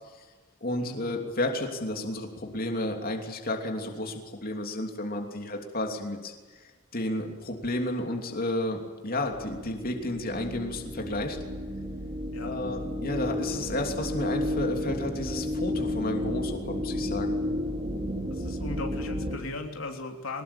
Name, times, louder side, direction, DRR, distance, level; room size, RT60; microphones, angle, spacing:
voice 1, 0.6-6.3 6.9-11.4 12.4-17.4, left 1 dB, 45° left, 2 dB, 3.1 m, -32 dB
sound 1, 9.3-19.4, left 1 dB, 30° right, 2.6 m, -32 dB
voice 2, 18.3-20.4, left 2 dB, 85° left, 3 dB, 3.2 m, -37 dB
23.0 x 20.0 x 8.8 m, 1.4 s
head